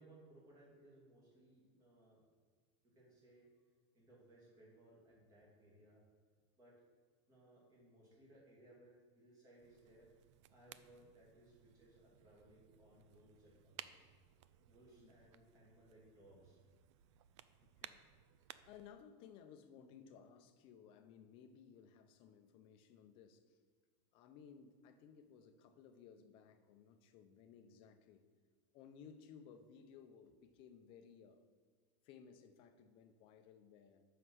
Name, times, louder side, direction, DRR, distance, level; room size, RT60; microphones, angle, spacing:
voice 1, 0.0-2.2 2.8-3.5 3.9-6.0 6.6-6.7 7.3-10.1 10.5-14.0 14.7-16.6, right 1 dB, 25° right, -4 dB, 2.5 m, -64 dB
sound 1, 9.6-18.9, right 12 dB, 85° right, 0.4 m, -59 dB
voice 2, 17.6-18.0 18.5-23.6 24.1-28.2 28.7-31.4 32.0-34.0, left 7 dB, 35° left, 7 dB, 0.6 m, -60 dB
7.5 x 5.6 x 6.3 m, 1.5 s
supercardioid pair, 170°, 15 cm